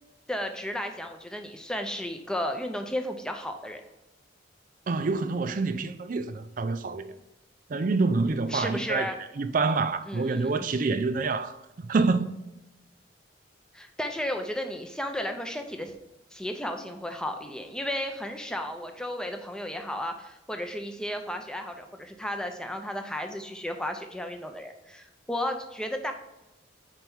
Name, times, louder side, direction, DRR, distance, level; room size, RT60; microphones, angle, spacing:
voice 1, 0.3-3.8 8.5-9.2 10.1-10.7 13.7-16.0 16.3-26.1, left 1 dB, 5° left, 0.6 m, -34 dB
voice 2, 4.9-7.1 7.7-12.3, right 3 dB, 45° right, 0.4 m, -27 dB
4.6 x 4.5 x 5.4 m
head